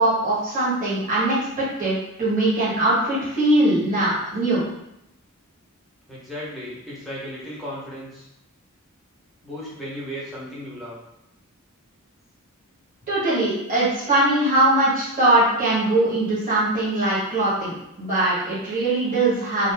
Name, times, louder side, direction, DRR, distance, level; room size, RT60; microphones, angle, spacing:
voice 1, 0.0-4.7 13.1-19.7, right 2 dB, 40° right, -10 dB, 1.2 m, -21 dB
voice 2, 6.1-8.3 9.4-11.0, equal, ahead, -8 dB, 0.8 m, -35 dB
2.5 x 2.5 x 3.3 m, 0.84 s
head